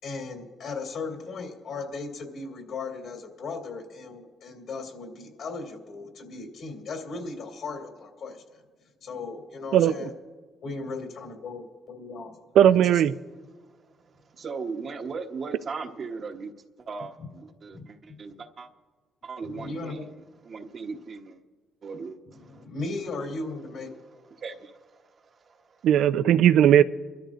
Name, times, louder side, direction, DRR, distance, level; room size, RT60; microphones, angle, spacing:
voice 1, 0.0-8.6 9.0-10.1 10.6-12.4 12.8-13.0 17.7-17.8 18.1-18.2 19.4-20.0 22.5-23.9, left 3 dB, 70° left, 3.0 m, -37 dB
voice 2, 12.6-13.1 25.8-26.8, right 10 dB, 80° right, 0.4 m, -17 dB
voice 3, 13.5-16.5 16.8-18.7 19.2-21.4 21.8-22.6 24.3-25.9, right 4 dB, 50° right, 1.1 m, -39 dB
28.0 x 13.0 x 2.5 m
cardioid pair, 90°, 0 cm